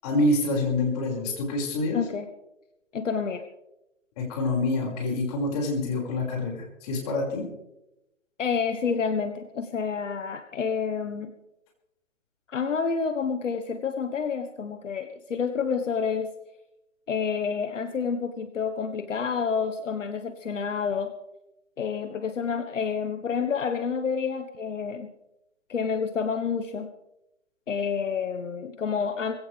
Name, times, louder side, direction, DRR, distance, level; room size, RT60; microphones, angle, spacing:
voice 1, 0.0-2.0 4.2-7.5, left 2 dB, 30° left, -1 dB, 5.9 m, -26 dB
voice 2, 1.9-2.3 2.9-3.4 8.4-11.4 12.5-16.3 17.1-21.1 21.8-25.1 25.7-26.9 27.7-29.4, left 6 dB, 70° left, 8 dB, 1.5 m, -29 dB
20.0 x 17.0 x 3.5 m, 0.91 s
hypercardioid pair, 155°, 39 cm